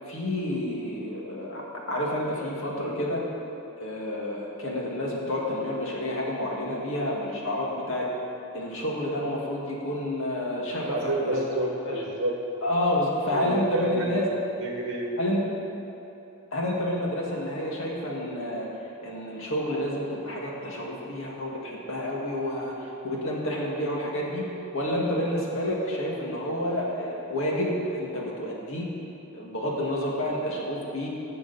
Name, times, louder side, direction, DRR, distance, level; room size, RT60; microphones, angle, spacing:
voice 1, 0.1-1.6 1.9-3.2 3.8-8.1 8.5-11.5 11.9-12.0 12.6-14.3 15.2-15.5 16.5-24.5 24.7-28.9 29.3-31.1, left 1 dB, 65° left, -3 dB, 2.1 m, -29 dB
voice 2, 10.9-12.7 13.3-14.3 14.6-15.2, right 2 dB, 55° right, -1 dB, 1.2 m, -30 dB
17.0 x 6.9 x 4.2 m, 2.9 s
head